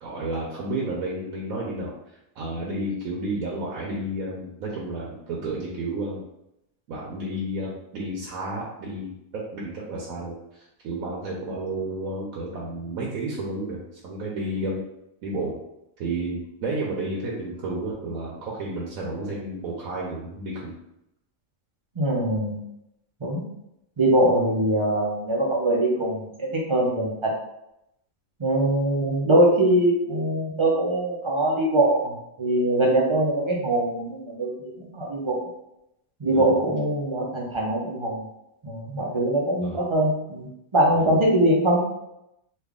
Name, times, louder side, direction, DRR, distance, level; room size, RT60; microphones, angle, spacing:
voice 1, 0.0-1.9 2.4-6.2 6.9-10.3 10.8-13.8 14.0-14.8 15.2-15.6 16.0-20.7 36.3-36.6 39.6-39.8 40.9-41.1, right 2 dB, 80° right, -4 dB, 1.1 m, -31 dB
voice 2, 22.0-22.6 23.2-23.4 24.0-26.3 26.7-27.1 28.4-32.1 32.4-35.4 36.2-38.2 38.6-41.8, right 1 dB, 45° right, -3 dB, 0.4 m, -22 dB
3.3 x 2.4 x 3.5 m, 0.83 s
omnidirectional pair, 1.4 m